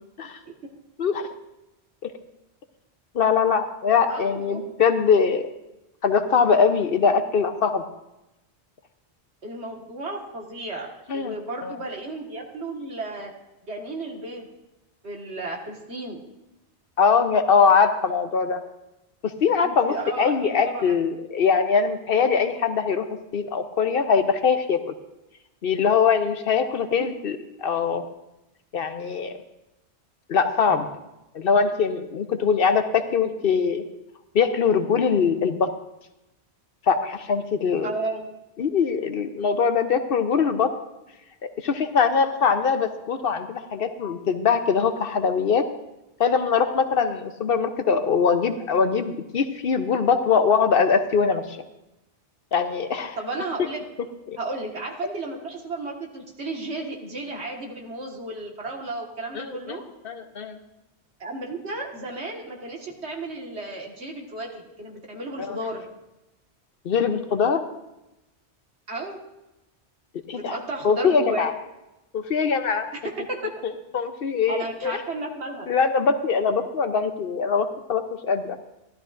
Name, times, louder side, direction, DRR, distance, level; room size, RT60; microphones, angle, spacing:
voice 1, 3.1-5.5 6.0-7.8 11.1-11.3 11.6-11.8 17.0-18.6 19.2-23.1 23.3-24.8 25.6-28.0 28.7-29.3 30.3-30.9 31.3-33.8 34.3-35.7 36.9-37.9 38.6-40.7 41.6-45.7 46.2-51.6 52.5-53.2 54.3-54.4 59.3-59.8 60.0-60.6 65.4-65.6 66.8-67.7 70.3-70.6 70.8-71.5 72.1-72.9 73.6-75.0 75.7-78.6, left 6 dB, 60° left, 8 dB, 0.9 m, -22 dB
voice 2, 4.1-4.6 9.4-10.9 11.1-13.3 13.7-14.5 15.0-16.2 19.6-21.0 26.9-27.1 37.8-38.2 47.9-48.0 53.2-53.8 54.4-59.8 61.2-65.8 68.9-69.2 70.3-71.5 72.9-73.5 74.5-75.7, right 2 dB, 70° right, 0 dB, 1.9 m, -33 dB
16.5 x 12.0 x 2.5 m, 0.93 s
omnidirectional pair, 1.1 m